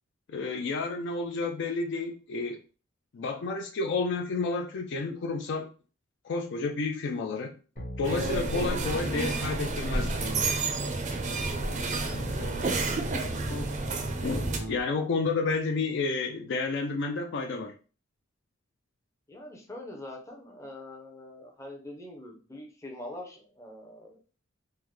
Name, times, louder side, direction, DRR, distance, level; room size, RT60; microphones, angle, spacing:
voice 1, 0.3-2.6 3.1-5.7 6.2-7.5 8.0-10.3 14.2-17.7, left 3 dB, 60° left, 3 dB, 0.4 m, -30 dB
sound 1, 7.8-8.3 8.8-9.3 9.9-10.5 12.1-12.7 13.2-13.7 14.3-14.8, equal, 40° left, 1.1 m, -37 dB
sound 2, 8.0-14.6, right 3 dB, 35° right, 0.4 m, -30 dB
voice 2, 11.2-11.6 19.3-24.2, left 1 dB, 15° left, 1 dB, 0.6 m, -44 dB
3.5 x 2.1 x 3.1 m, 0.37 s
head